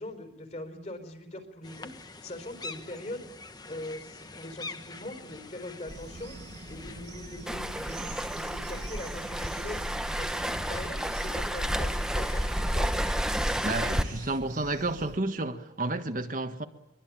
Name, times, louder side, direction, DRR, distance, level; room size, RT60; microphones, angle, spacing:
voice 1, 0.0-3.3 3.6-6.4 6.7-9.8 10.1-12.9, left 1 dB, 40° left, 4.7 m, -41 dB
sound 1, 1.6-14.4, left 3 dB, 20° left, 1.3 m, -46 dB
sound 2, 5.9-15.2, right 3 dB, 70° right, 1.4 m, -46 dB
Waves surf, 7.5-14.0, equal, 5° right, 1.0 m, -30 dB
voice 2, 13.6-16.6, right 2 dB, 45° right, 1.5 m, -31 dB
24.0 x 23.0 x 8.9 m
head